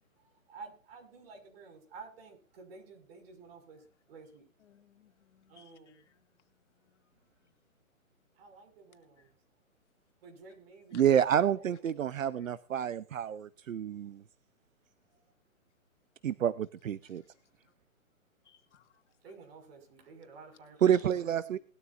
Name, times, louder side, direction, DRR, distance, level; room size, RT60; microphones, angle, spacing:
voice 1, 0.5-4.5 5.5-6.0 8.4-9.3 10.2-11.9 15.1-15.2 19.2-21.6, right 4 dB, 45° right, 6.0 m, -52 dB
voice 2, 4.6-6.3 6.8-7.1 9.2-9.3 10.9-11.0 12.4-12.5 17.0-17.3 18.4-19.0, left 8 dB, 55° left, 2.7 m, -63 dB
voice 3, 10.9-14.2 16.2-17.2 20.8-21.6, right 9 dB, 65° right, 0.8 m, -28 dB
20.5 x 13.0 x 2.6 m
hypercardioid pair, 150°, 43 cm